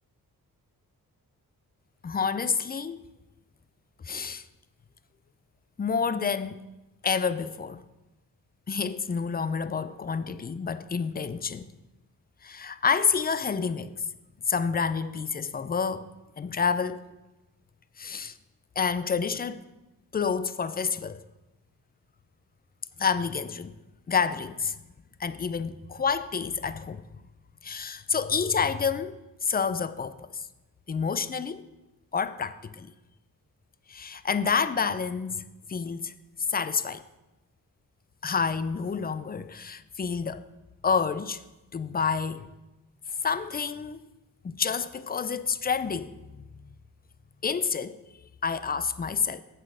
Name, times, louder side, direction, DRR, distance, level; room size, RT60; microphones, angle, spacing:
voice 1, 2.0-3.0 4.0-4.5 5.8-6.6 7.0-7.8 8.7-11.7 12.4-14.0 14.5-16.1 16.4-17.0 18.0-18.3 18.8-19.6 20.1-21.2 23.0-23.8 24.1-24.8 25.2-27.0 27.6-30.5 30.9-31.6 32.1-32.9 33.9-36.1 36.5-37.0 38.2-40.5 40.8-41.4 41.7-42.5 43.2-44.0 44.4-46.4 47.4-49.4, left 6 dB, 25° left, 0.4 m, -29 dB
7.5 x 6.9 x 4.9 m
cardioid pair, 75°, 36 cm